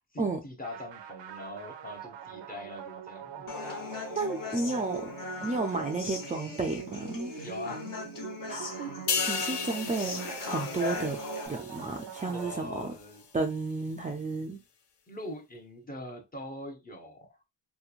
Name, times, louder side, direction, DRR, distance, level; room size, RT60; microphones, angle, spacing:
voice 1, 0.1-3.5 7.4-7.8 12.2-13.2 15.1-17.4, left 1 dB, 20° left, 0.7 m, -42 dB
sound 1, 0.6-13.2, right 8 dB, 85° right, 0.6 m, -43 dB
Human voice, 3.5-11.5, left 5 dB, 50° left, 0.9 m, -39 dB
voice 2, 4.1-5.1 5.4-7.3 8.5-11.2 11.5-12.9 13.3-14.6, right 3 dB, 20° right, 0.4 m, -32 dB
sound 2, 9.1-12.6 13.0-13.2, left 6 dB, 70° left, 0.6 m, -35 dB
2.9 x 2.2 x 2.4 m
cardioid pair, 90°, 43 cm